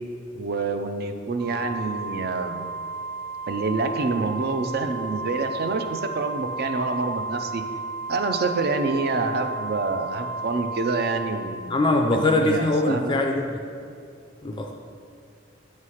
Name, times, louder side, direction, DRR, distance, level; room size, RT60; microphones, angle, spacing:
voice 1, 0.4-2.7 3.5-7.6 8.1-11.7 12.0-13.2, right 3 dB, 50° right, 7 dB, 0.4 m, -27 dB
Organ, 1.4-12.1, right 3 dB, 75° right, 0.8 m, -33 dB
voice 2, 11.7-13.6 14.4-14.7, left 2 dB, 25° left, 3 dB, 0.3 m, -22 dB
8.2 x 3.2 x 5.6 m, 2.4 s
head